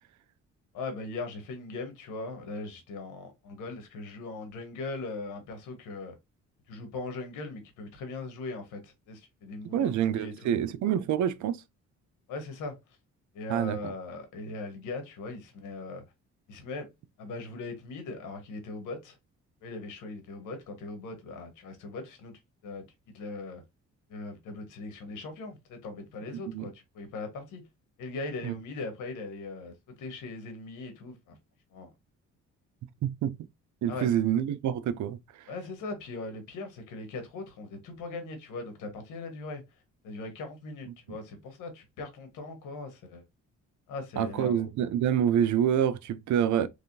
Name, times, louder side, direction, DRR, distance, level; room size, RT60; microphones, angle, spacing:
voice 1, 0.7-6.1 6.7-10.6 12.3-12.8 13.3-16.0 16.5-16.9 17.2-19.2 19.6-22.3 22.6-22.9 23.1-23.6 24.1-27.6 28.0-31.4 31.7-31.9 33.9-34.1 35.5-39.6 40.0-43.2 43.9-44.7, left 3 dB, 90° left, 1.5 m, -39 dB
voice 2, 9.7-11.6 13.5-13.9 26.5-26.6 28.4-28.5 33.0-33.4 33.8-35.2 44.2-46.7, right 9 dB, 70° right, 0.6 m, -27 dB
3.5 x 3.4 x 2.7 m
cardioid pair, 90°, 30 cm